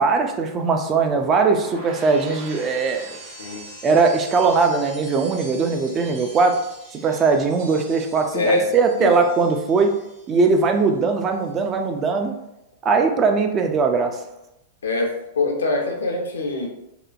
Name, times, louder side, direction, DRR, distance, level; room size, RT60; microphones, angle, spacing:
voice 1, 0.0-3.2 3.8-6.6 6.9-9.9 10.3-12.3 12.8-14.2, right 4 dB, 30° right, 4 dB, 0.3 m, -20 dB
sound 1, 0.8-10.9 11.2-11.7, right 2 dB, 45° right, 0.7 m, -42 dB
voice 2, 8.3-8.7 9.0-9.2 14.8-16.7, left 2 dB, 80° left, 2 dB, 0.5 m, -23 dB
2.8 x 2.1 x 2.4 m, 0.87 s
hypercardioid pair, 105°, 0 cm